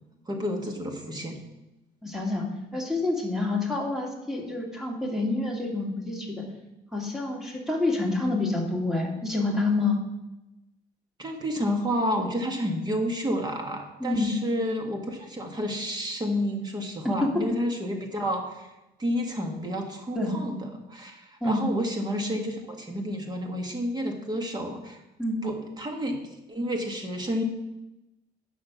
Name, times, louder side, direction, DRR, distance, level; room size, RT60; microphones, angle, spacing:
voice 1, 0.3-1.4 11.2-18.7 19.0-25.0 25.4-26.2 26.5-27.4, equal, 25° right, 3 dB, 1.9 m, -30 dB
voice 2, 2.0-2.4 2.7-6.4 6.9-10.0 14.0-14.3 17.2-17.3 20.2-20.3 21.4-21.6 25.2-25.4, left 2 dB, 5° right, -1 dB, 2.4 m, -27 dB
9.3 x 6.5 x 6.1 m, 0.97 s
cardioid pair, 110°, 17 cm